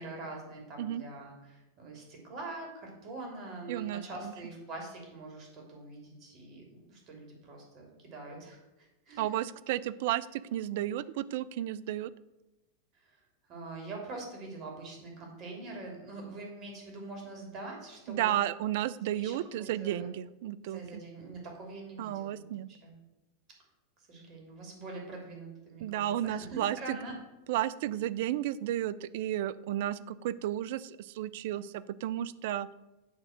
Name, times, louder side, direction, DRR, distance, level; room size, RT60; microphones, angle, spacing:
voice 1, 0.0-9.4 12.9-13.2 13.5-18.3 19.2-20.1 20.7-22.4 22.7-22.9 24.1-27.1, right 2 dB, 45° right, 1 dB, 3.0 m, -44 dB
voice 2, 3.7-4.3 9.2-12.1 18.1-21.0 22.0-22.7 25.8-27.0 27.5-32.7, right 12 dB, 65° right, 17 dB, 0.4 m, -33 dB
8.9 x 3.6 x 6.6 m, 1.0 s
hypercardioid pair, 100°, 0 cm